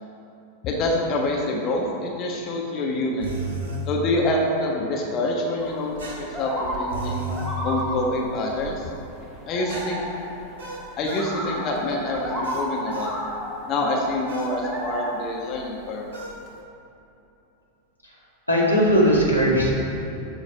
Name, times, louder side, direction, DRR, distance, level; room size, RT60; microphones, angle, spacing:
voice 1, 0.6-3.3 3.8-7.3 7.6-8.9 9.5-10.0 11.0-13.1 13.7-16.1, left 1 dB, 35° left, -1 dB, 1.2 m, -26 dB
sound 1, 3.2-3.9 6.0-7.5 9.7-11.3 12.4-13.2 14.3-14.6 16.1-16.4, right 2 dB, 55° right, 1.7 m, -34 dB
sound 2, 5.6-16.5, equal, 10° right, 1.9 m, -33 dB
voice 2, 18.5-19.7, equal, 90° left, -6 dB, 1.9 m, -18 dB
12.5 x 4.6 x 4.7 m, 2.9 s
figure-of-eight pair, 90°, 0 cm